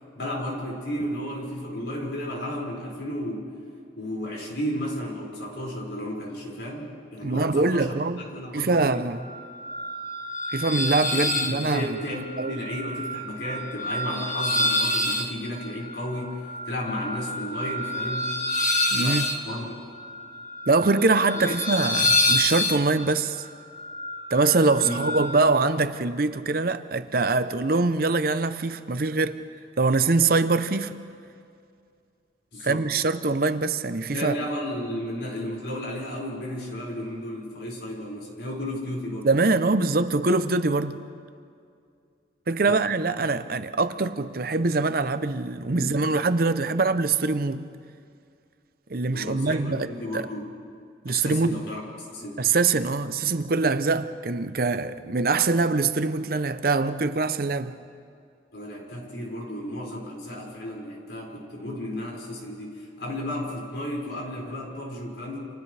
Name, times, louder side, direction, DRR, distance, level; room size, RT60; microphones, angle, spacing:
voice 1, 0.1-3.5 4.0-8.0 8.3-9.1 11.1-18.3 19.0-19.8 21.4-21.5 22.0-22.2 24.8-25.1 32.5-32.8 34.1-39.3 42.7-42.8 45.7-45.9 49.1-50.5 51.1-52.5 58.5-65.4, left 1 dB, 70° left, 5.7 m, -33 dB
voice 2, 7.2-8.2 8.5-9.2 10.5-12.0 12.4-12.5 18.9-19.2 20.7-23.4 24.3-29.4 29.8-30.9 32.6-34.3 39.2-41.0 42.5-47.7 48.9-50.3 51.0-51.6 52.4-57.7, right 3 dB, 50° right, 0.7 m, -23 dB
sound 1, 9.2-25.4, left 1 dB, 40° left, 1.6 m, -28 dB
30.0 x 27.0 x 3.4 m
head